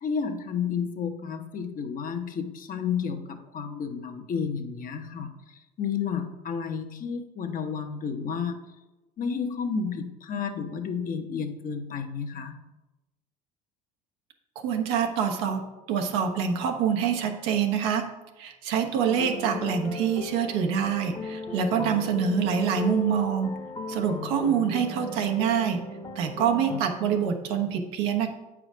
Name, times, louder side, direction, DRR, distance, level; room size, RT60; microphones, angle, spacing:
voice 1, 0.0-5.3 5.8-8.6 9.2-12.6, left 6 dB, 45° left, 5 dB, 1.0 m, -31 dB
voice 2, 14.5-15.6 15.9-18.0 18.4-23.5 23.9-25.8 26.1-28.3, right 7 dB, 80° right, 4 dB, 1.1 m, -26 dB
sound 1, 19.1-26.8, left 3 dB, 20° left, 1.0 m, -36 dB
8.0 x 4.9 x 5.0 m, 1.1 s
supercardioid pair, 85°, 20 cm